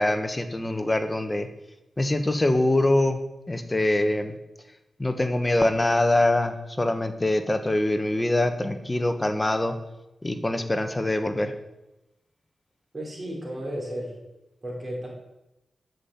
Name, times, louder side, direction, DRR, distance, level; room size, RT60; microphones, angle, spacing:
voice 1, 0.0-1.5 2.0-3.2 3.5-4.4 5.0-9.8 10.2-11.5, left 1 dB, 20° left, 7 dB, 1.4 m, -24 dB
voice 2, 12.9-14.2 14.6-15.1, equal, 30° right, -2 dB, 5.3 m, -33 dB
11.0 x 7.8 x 9.5 m, 0.94 s
wide cardioid pair, 115°, 0 cm